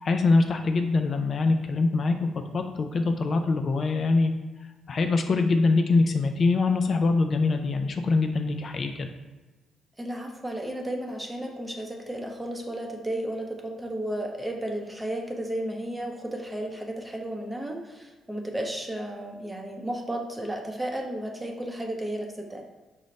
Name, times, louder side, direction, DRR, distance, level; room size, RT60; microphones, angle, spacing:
voice 1, 0.0-4.3 4.9-9.1, left 3 dB, 45° left, 6 dB, 0.3 m, -24 dB
voice 2, 10.0-22.6, right 1 dB, 10° right, 2 dB, 0.6 m, -33 dB
5.1 x 2.1 x 4.0 m, 1.2 s
cardioid pair, 90°, 0 cm